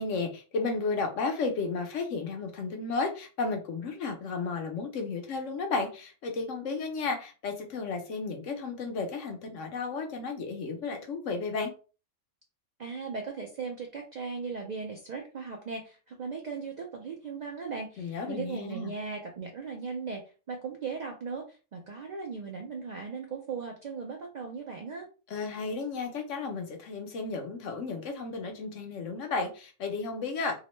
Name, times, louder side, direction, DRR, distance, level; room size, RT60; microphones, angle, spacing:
voice 1, 0.0-11.7 18.0-18.9 25.3-30.6, left 4 dB, 75° left, 3 dB, 1.0 m, -33 dB
voice 2, 12.8-25.1, right 5 dB, 75° right, 2 dB, 0.4 m, -38 dB
2.8 x 2.1 x 3.0 m, 0.35 s
omnidirectional pair, 1.3 m